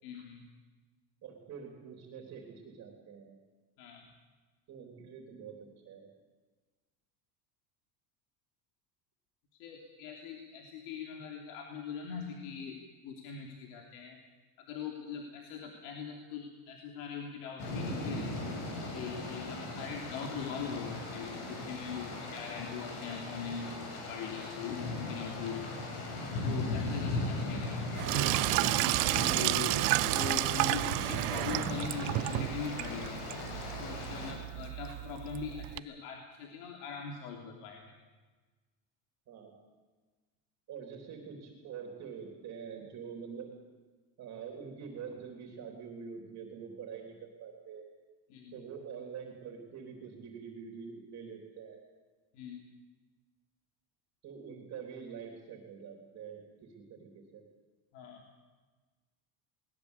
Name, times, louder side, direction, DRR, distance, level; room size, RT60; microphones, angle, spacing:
voice 1, 0.0-0.4 3.8-4.1 9.6-14.2 14.6-18.3 18.9-25.8 26.4-27.7 27.9-29.8 30.1-33.2 33.8-37.9 48.3-48.6 52.3-52.6 57.9-58.3, left 6 dB, 75° left, 2 dB, 3.2 m, -42 dB
voice 2, 1.2-3.4 4.7-6.1 27.4-27.6 39.3-39.5 40.7-43.5 44.2-47.8 48.5-51.8 54.2-57.4, right 6 dB, 35° right, 3 dB, 3.6 m, -45 dB
sound 1, 17.6-34.3, left 2 dB, 60° left, 6.7 m, -38 dB
Sink (filling or washing), 27.9-35.8, right 22 dB, 65° right, 0.6 m, -31 dB
20.5 x 20.0 x 8.3 m, 1.3 s
cardioid pair, 165°, 44 cm